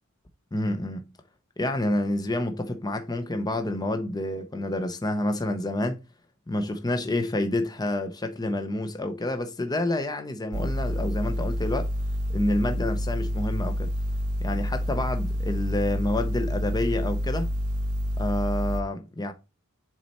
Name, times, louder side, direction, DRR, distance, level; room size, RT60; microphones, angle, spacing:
voice 1, 0.5-1.1 1.6-6.0 6.5-11.9 12.3-13.9 14.4-17.5 18.2-19.3, left 1 dB, 20° left, 0.7 m, -28 dB
sound 1, 10.5-18.8, equal, 80° right, 0.7 m, -28 dB
7.4 x 4.2 x 4.1 m
head